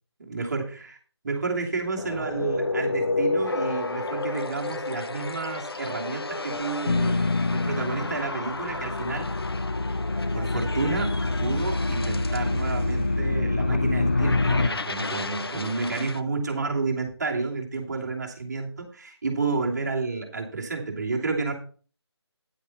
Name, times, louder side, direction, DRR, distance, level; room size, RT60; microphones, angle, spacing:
voice 1, 0.2-1.0 1.2-7.2 7.5-9.3 10.3-11.1 11.4-21.5, right 4 dB, 40° right, 0 dB, 2.8 m, -30 dB
sound 1, 2.0-16.2, left 3 dB, 60° left, 0.9 m, -32 dB
sound 2, 6.9-8.3 8.5-14.7, left 2 dB, 25° left, 0.4 m, -26 dB
10.5 x 8.2 x 4.3 m, 0.41 s
figure-of-eight pair, 160°, 15 cm